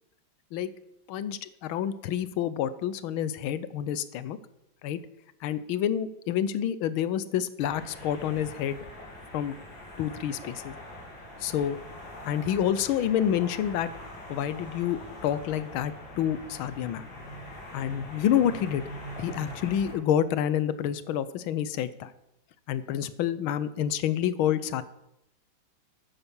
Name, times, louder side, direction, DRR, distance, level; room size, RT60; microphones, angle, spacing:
voice 1, 1.1-4.4 4.8-5.0 5.4-8.8 9.3-9.5 10.0-10.7 11.4-11.8 12.2-13.9 14.3-17.1 17.7-18.8 19.2-22.1 22.7-24.8, left 10 dB, 75° left, 15 dB, 1.5 m, -28 dB
sound 1, 7.6-19.9, equal, 55° left, 3.9 m, -43 dB
9.9 x 9.4 x 7.1 m, 0.84 s
omnidirectional pair, 2.3 m